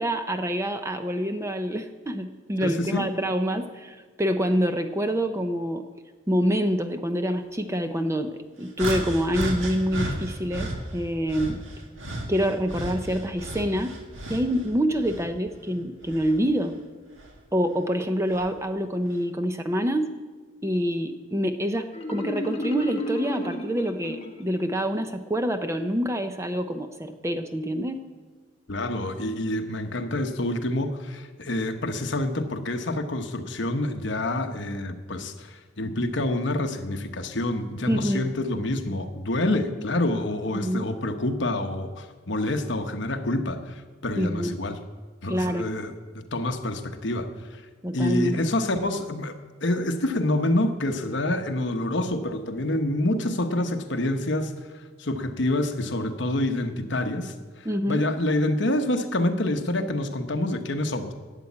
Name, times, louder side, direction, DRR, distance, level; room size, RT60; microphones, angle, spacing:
voice 1, 0.0-5.8 6.3-11.6 12.3-13.9 14.3-16.8 17.5-20.1 20.6-28.0 37.9-38.3 40.5-40.8 44.2-44.6 45.3-45.7 47.8-48.4 57.6-58.0, equal, 15° right, 8 dB, 0.6 m, -26 dB
voice 2, 2.6-3.1 28.7-44.8 45.2-47.6 47.9-54.5 55.0-57.3 57.6-61.1, left 1 dB, 60° left, 7 dB, 1.0 m, -27 dB
sound 1, 8.8-10.8 11.3-14.6 14.9-16.4 17.2-17.4 18.3-18.5, right 1 dB, 70° right, 2.1 m, -33 dB
Marimba xylophone, 21.9-24.7, left 1 dB, 30° left, 1.4 m, -32 dB
12.5 x 8.3 x 8.5 m, 1.4 s
head